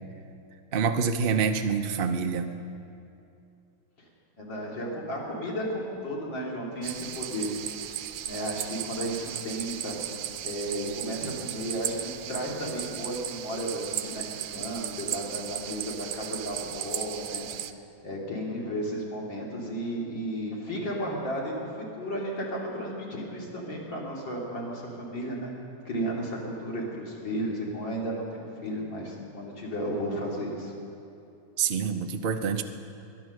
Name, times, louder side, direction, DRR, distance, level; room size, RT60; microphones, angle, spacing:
voice 1, 0.7-2.5 31.6-32.6, right 6 dB, 60° right, 6 dB, 0.5 m, -26 dB
voice 2, 4.4-7.5 7.8-9.9 10.4-17.5 18.0-25.5 25.9-30.7, equal, 70° left, -3 dB, 3.5 m, -33 dB
sound 1, 6.8-17.7, right 11 dB, 75° right, 1.3 m, -36 dB
22.0 x 10.5 x 6.4 m, 2.7 s
omnidirectional pair, 2.1 m